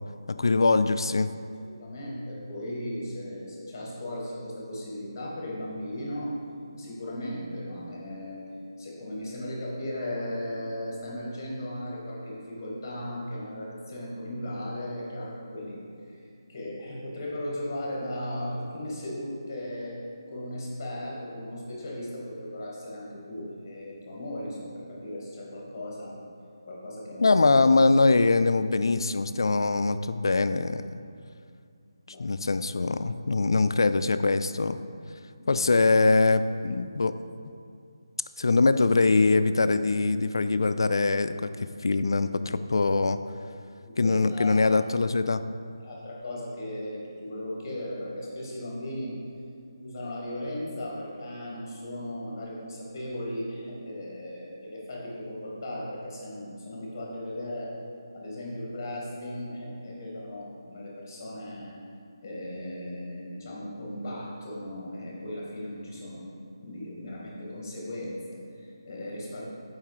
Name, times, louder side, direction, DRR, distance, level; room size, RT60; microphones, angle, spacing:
voice 1, 0.3-1.3 27.2-31.0 32.2-34.8 35.5-37.2 38.4-43.2 44.0-45.4, left 3 dB, 70° left, 11 dB, 0.3 m, -23 dB
voice 2, 1.6-6.4 6.7-8.4 8.8-15.8 16.1-16.2 16.5-20.0 20.3-26.1 26.6-27.4 32.1-32.2 35.3-35.6 43.8-44.7 45.8-49.2 49.8-57.7 58.1-61.8 62.2-66.3 66.6-69.4, left 1 dB, 30° left, -4 dB, 1.7 m, -37 dB
5.5 x 4.8 x 4.9 m, 2.3 s
figure-of-eight pair, 160°, 2 cm